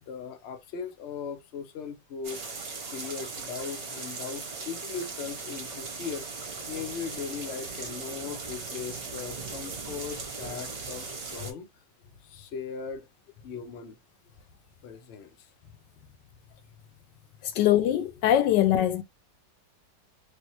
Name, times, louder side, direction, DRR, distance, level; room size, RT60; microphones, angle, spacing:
voice 1, 0.0-2.4 2.9-6.3 6.7-11.7 12.2-13.1 13.4-14.0 14.8-15.5, left 6 dB, 60° left, 0.7 m, -38 dB
sound 1, 2.2-11.5, right 4 dB, 45° right, 0.9 m, -38 dB
voice 2, 17.4-19.0, left 11 dB, 80° left, 1.2 m, -22 dB
3.2 x 2.7 x 2.8 m
omnidirectional pair, 1.9 m